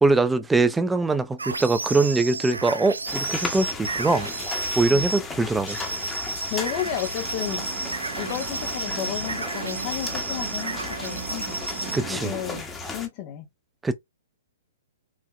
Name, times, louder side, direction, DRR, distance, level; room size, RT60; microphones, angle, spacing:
voice 1, 0.0-4.3 4.7-5.8 11.9-12.3 13.8-13.9, right 3 dB, 10° right, 0.5 m, -22 dB
sound 1, 1.4-5.2 5.7-12.0, right 3 dB, 80° right, 0.5 m, -32 dB
sound 2, 3.1-13.1, left 4 dB, 10° left, 1.2 m, -36 dB
voice 2, 6.4-7.7 8.1-11.6 12.1-13.5, left 11 dB, 40° left, 0.8 m, -32 dB
sound 3, 7.2-12.6, right 10 dB, 45° right, 1.1 m, -39 dB
4.8 x 2.8 x 2.2 m
figure-of-eight pair, 120°, 0 cm